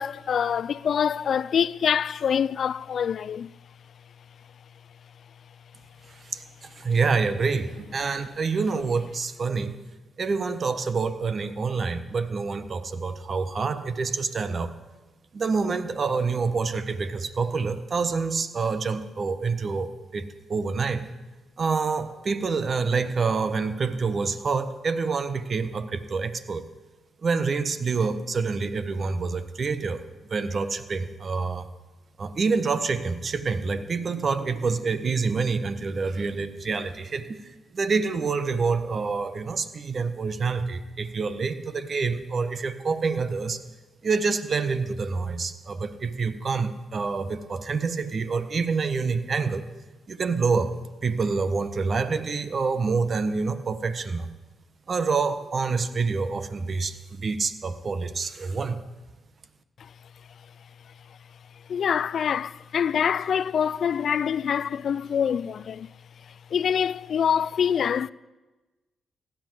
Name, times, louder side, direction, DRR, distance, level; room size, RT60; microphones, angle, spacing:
voice 1, 0.0-3.5 61.7-65.9 66.5-68.1, left 8 dB, 65° left, 0.4 m, -25 dB
voice 2, 6.2-9.8 10.2-14.7 15.3-21.0 21.6-26.6 27.2-30.0 30.3-31.7 32.2-43.6 44.0-49.7 50.1-50.8 51.0-54.3 54.9-58.8, right 4 dB, 50° right, 1.3 m, -27 dB
16.0 x 10.5 x 7.9 m
supercardioid pair, 50°, 0 cm